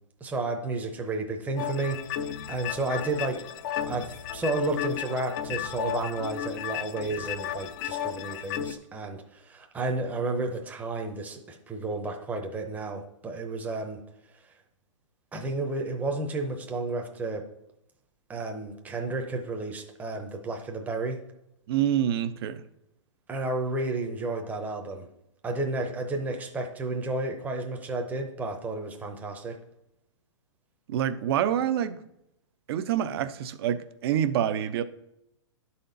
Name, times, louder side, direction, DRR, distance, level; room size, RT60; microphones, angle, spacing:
voice 1, 0.2-3.4 3.9-14.0 15.3-17.4 18.3-21.2 23.3-25.1 25.4-29.6, right 2 dB, 10° right, 2 dB, 0.7 m, -32 dB
sound 1, 1.6-8.7, left 10 dB, 40° left, 0.5 m, -34 dB
voice 2, 21.7-22.6 30.9-32.0 32.7-34.8, right 10 dB, 50° right, 12 dB, 0.6 m, -27 dB
11.5 x 4.2 x 3.9 m, 0.82 s
hypercardioid pair, 130°, 16 cm